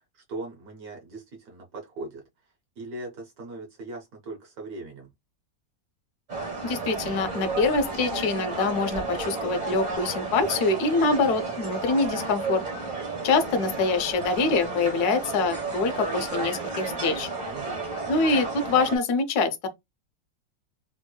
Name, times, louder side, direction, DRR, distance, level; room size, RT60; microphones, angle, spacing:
voice 1, 0.0-2.2 2.8-5.1 17.4-17.8, right 2 dB, 65° right, 1.2 m, -39 dB
sound 1, 6.3-19.0, right 3 dB, 30° right, 1.0 m, -32 dB
voice 2, 6.6-12.6 13.2-17.3 18.1-19.7, left 3 dB, 70° left, 1.1 m, -25 dB
3.5 x 2.9 x 2.2 m
omnidirectional pair, 1.9 m